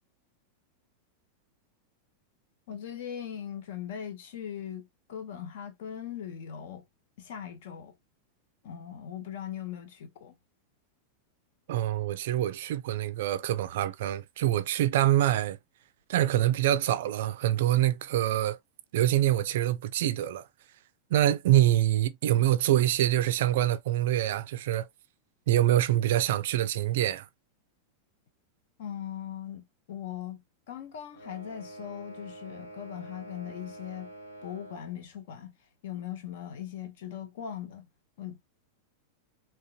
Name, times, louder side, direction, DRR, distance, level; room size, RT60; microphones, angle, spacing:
voice 1, 2.7-6.8 7.2-7.9 8.6-10.4 21.6-21.7 28.8-34.1 34.4-35.5 35.8-37.9 38.2-38.4, left 9 dB, 55° left, 0.6 m, -40 dB
voice 2, 11.7-15.6 16.1-18.6 18.9-20.4 21.1-24.9 25.5-27.3, right 13 dB, 55° right, 0.3 m, -25 dB
sound 1, 31.1-35.0, right 1 dB, 85° left, 1.0 m, -46 dB
3.8 x 2.2 x 2.4 m
figure-of-eight pair, 90°, 0 cm